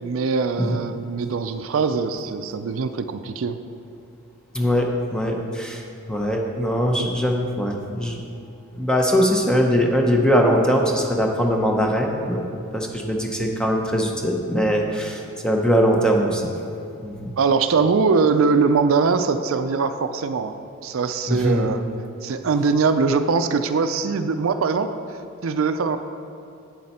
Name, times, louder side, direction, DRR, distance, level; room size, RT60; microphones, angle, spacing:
voice 1, 0.0-3.6 7.0-7.1 17.4-20.6 20.8-21.8 22.2-24.9 25.4-26.0, right 4 dB, 75° right, 9 dB, 0.4 m, -22 dB
voice 2, 4.5-5.8 6.1-8.2 8.7-12.4 12.7-16.5 17.0-17.3 21.3-21.7, equal, 5° left, 1 dB, 0.7 m, -21 dB
8.8 x 7.4 x 4.2 m, 2.6 s
head